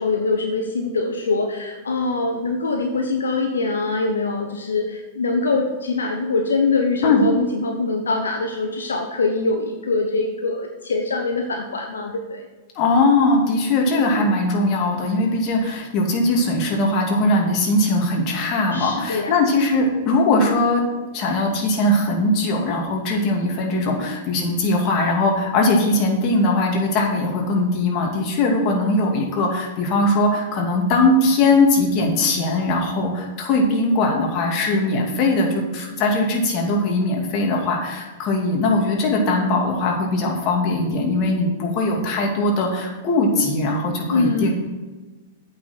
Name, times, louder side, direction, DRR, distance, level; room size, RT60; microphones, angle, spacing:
voice 1, 0.0-12.4 18.7-19.4 44.1-44.5, left 3 dB, 80° left, 3 dB, 0.9 m, -23 dB
voice 2, 12.7-20.8 21.1-44.5, left 2 dB, 45° left, 1 dB, 2.5 m, -20 dB
8.6 x 6.0 x 6.0 m, 1.3 s
hypercardioid pair, 105°, 0 cm